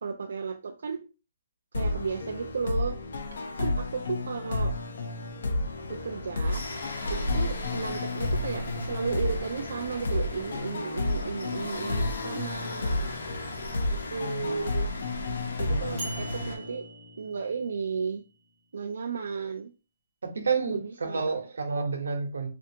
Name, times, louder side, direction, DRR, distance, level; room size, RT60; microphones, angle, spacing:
voice 1, 0.0-1.1 1.7-3.0 3.5-4.7 5.9-6.7 7.1-13.0 13.9-14.9 15.6-16.9 17.2-18.2 18.7-19.7 20.7-21.4, right 5 dB, 65° right, 4 dB, 0.3 m, -34 dB
sound 1, 1.7-17.2, left 2 dB, 60° left, 0.5 m, -32 dB
sound 2, 2.0-16.6, left 2 dB, 80° left, 0.8 m, -39 dB
voice 2, 15.6-16.3 20.2-22.5, right 4 dB, 85° right, 4 dB, 0.9 m, -30 dB
sound 3, 16.0-18.0, right 3 dB, 15° right, 0.6 m, -43 dB
3.3 x 2.5 x 2.7 m, 0.32 s
hypercardioid pair, 180°, 0 cm